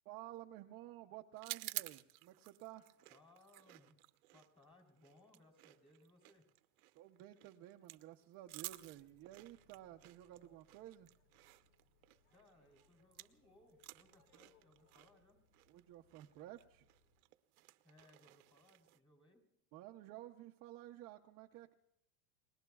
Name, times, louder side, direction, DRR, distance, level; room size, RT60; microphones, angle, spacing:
voice 1, 0.0-2.9 6.9-11.1 15.7-16.9 19.7-21.7, right 14 dB, 35° right, 2 dB, 0.6 m, -53 dB
sound 1, 1.4-13.4 13.7-19.0, right 19 dB, 85° right, 0.9 m, -53 dB
voice 2, 3.1-4.0 4.3-6.4 12.3-15.4 17.8-19.4, left 2 dB, 10° left, 3 dB, 3.1 m, -67 dB
Boat Water vehicle, 8.4-17.3, left 4 dB, 80° left, 2.1 m, -75 dB
30.0 x 20.5 x 2.3 m, 0.79 s
supercardioid pair, 165°, 42 cm